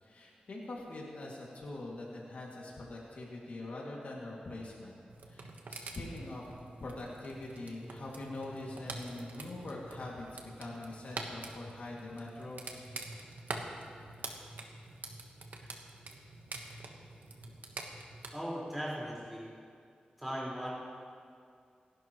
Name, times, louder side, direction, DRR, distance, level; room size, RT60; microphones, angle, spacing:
voice 1, 0.0-5.0 5.3-12.8, left 2 dB, 55° left, -4 dB, 2.4 m, -43 dB
sound 1, 5.1-18.3, right 3 dB, 75° right, 1.4 m, -46 dB
voice 2, 18.3-19.5 20.2-20.7, equal, 5° right, -7 dB, 4.7 m, -38 dB
29.0 x 11.5 x 3.1 m, 2.3 s
wide cardioid pair, 145°, 3 cm